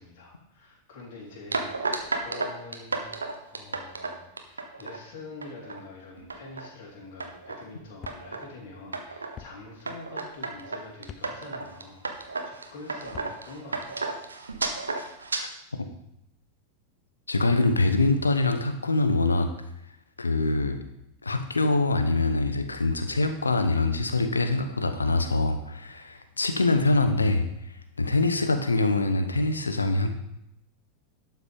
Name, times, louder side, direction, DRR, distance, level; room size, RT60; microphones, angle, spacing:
voice 1, 0.0-3.1 3.4-14.0, left 3 dB, 50° left, -4 dB, 3.5 m, -45 dB
sound 1, 1.5-5.0 5.4-5.8 6.2-6.7 7.2-7.6 8.1-8.5 8.9-9.4 9.9-15.4, right 3 dB, 75° right, 1.1 m, -33 dB
sound 2, 8.0-8.2 9.4-9.5 11.0-11.3 13.0-13.3, left 8 dB, 30° left, 0.7 m, -43 dB
voice 2, 17.3-19.5 20.2-20.8 21.2-27.5 28.0-30.1, left 2 dB, 80° left, 8 dB, 0.9 m, -24 dB
12.0 x 6.0 x 5.3 m, 0.80 s
figure-of-eight pair, 90°, 0 cm